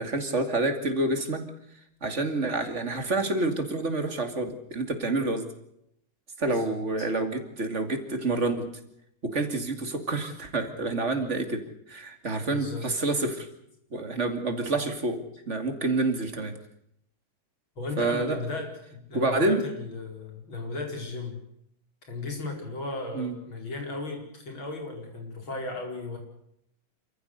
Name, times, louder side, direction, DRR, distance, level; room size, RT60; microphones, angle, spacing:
voice 1, 0.0-1.4 2.0-5.5 6.4-8.7 9.2-11.6 11.9-13.5 13.9-16.5 18.0-18.4 19.1-19.6 23.1-23.4, right 2 dB, 35° right, 6 dB, 2.7 m, -28 dB
voice 2, 6.4-6.7 12.5-12.9 17.8-21.4 22.1-26.2, left 2 dB, 75° left, 3 dB, 5.6 m, -36 dB
27.5 x 14.5 x 8.1 m, 0.76 s
omnidirectional pair, 2.2 m